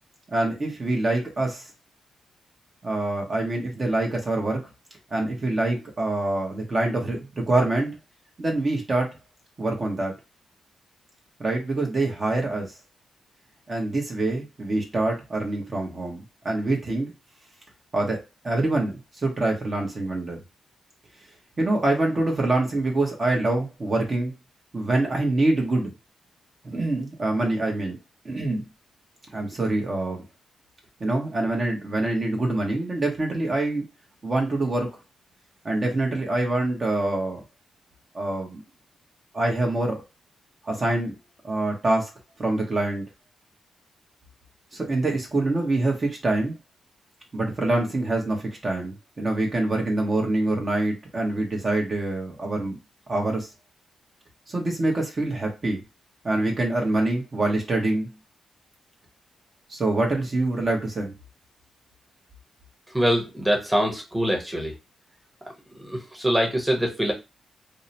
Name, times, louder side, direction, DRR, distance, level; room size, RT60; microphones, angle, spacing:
voice 1, 0.3-1.7 2.8-4.6 5.1-8.0 8.4-9.2 9.6-10.1 11.4-12.7 13.7-17.1 17.9-20.4 21.6-24.3 24.7-25.9 26.6-28.0 28.2-28.6 29.3-30.2 31.0-33.8 34.2-34.9 35.6-37.4 38.1-38.6 39.3-40.0 40.6-41.1 41.4-42.1 42.4-43.0 44.7-46.5 47.3-52.8 53.1-53.5 54.5-55.8 56.2-58.1 59.7-61.1, right 2 dB, 40° right, 0 dB, 0.9 m, -25 dB
voice 2, 62.9-64.7 65.7-67.1, equal, 10° right, 0 dB, 1.0 m, -24 dB
2.7 x 2.1 x 2.7 m, 0.25 s
cardioid pair, 70°, 0 cm